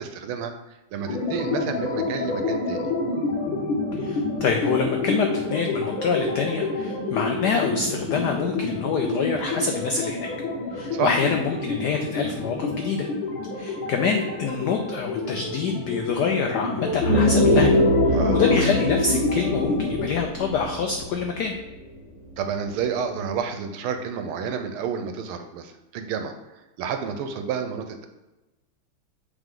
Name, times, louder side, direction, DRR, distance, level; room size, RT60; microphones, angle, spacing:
voice 1, 0.0-2.9 10.9-11.1 18.1-18.7 22.4-28.1, right 7 dB, 80° right, 7 dB, 1.5 m, -30 dB
sound 1, 1.0-20.1, left 3 dB, 70° left, 1.9 m, -28 dB
voice 2, 4.0-10.3 10.7-13.1 13.6-17.7 18.1-21.5, left 5 dB, 90° left, 3 dB, 0.9 m, -26 dB
sound 2, 16.9-21.7, left 1 dB, 30° right, 1.6 m, -22 dB
8.1 x 3.6 x 3.7 m, 1.0 s
omnidirectional pair, 2.4 m